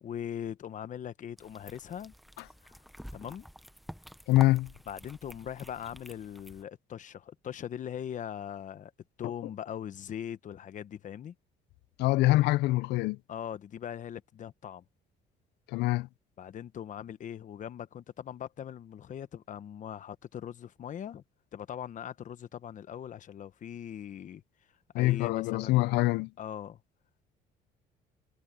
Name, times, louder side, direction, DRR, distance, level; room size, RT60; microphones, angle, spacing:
voice 1, 0.0-2.1 2.6-2.8 3.1-3.5 4.9-8.9 9.2-11.3 13.3-14.8 16.4-21.2 21.5-24.4 24.9-25.9 26.4-26.8, left 9 dB, 50° left, 1.1 m, -40 dB
sound 1, 1.4-6.6, equal, ahead, 0.9 m, -48 dB
voice 2, 4.3-4.7 12.0-13.2 15.7-16.1 24.9-26.3, left 18 dB, 85° left, 0.5 m, -25 dB
cardioid pair, 110°, 17 cm